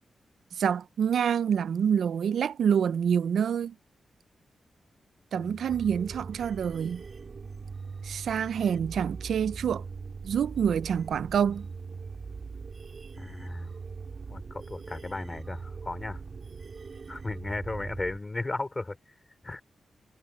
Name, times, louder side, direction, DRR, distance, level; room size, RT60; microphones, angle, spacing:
voice 1, 0.6-3.7 5.3-7.0 8.0-9.8 10.2-11.7, right 8 dB, 85° right, 0.5 m, -27 dB
voice 2, 5.4-5.7 13.2-13.7 14.3-16.2 17.1-19.0 19.4-19.6, left 2 dB, 20° left, 4.4 m, -35 dB
sound 1, 5.7-18.2, right 5 dB, 40° right, 4.5 m, -41 dB
wide cardioid pair, 180°, 0 cm